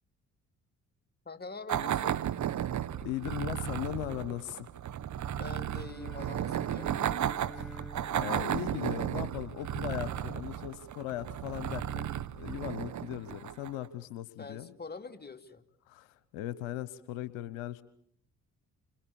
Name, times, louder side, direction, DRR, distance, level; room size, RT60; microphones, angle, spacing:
voice 1, 1.3-2.2 5.4-6.9 14.4-15.6, left 3 dB, 25° left, 7 dB, 2.7 m, -44 dB
sound 1, 1.7-13.9, right 10 dB, 45° right, 1.2 m, -34 dB
voice 2, 2.7-4.7 7.5-12.1 12.3-14.7 15.9-17.8, left 13 dB, 80° left, 16 dB, 1.1 m, -38 dB
Bowed string instrument, 5.5-9.6, left 1 dB, ahead, 6.8 m, -49 dB
30.0 x 27.0 x 7.1 m, 0.64 s
hypercardioid pair, 50°, 39 cm